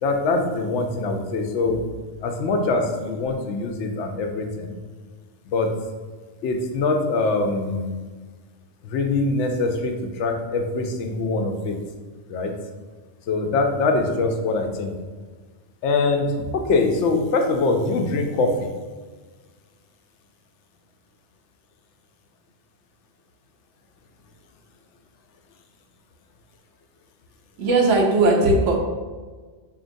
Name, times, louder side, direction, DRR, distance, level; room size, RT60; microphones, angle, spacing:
voice 1, 0.0-1.9 2.2-4.8 5.5-5.7 6.4-7.9 8.8-11.8 12.3-12.5 13.3-14.9 15.8-18.7, left 3 dB, 75° left, 4 dB, 0.9 m, -23 dB
voice 2, 27.6-28.8, right 2 dB, 90° right, 0 dB, 1.1 m, -18 dB
5.0 x 2.8 x 2.6 m, 1.4 s
omnidirectional pair, 1.2 m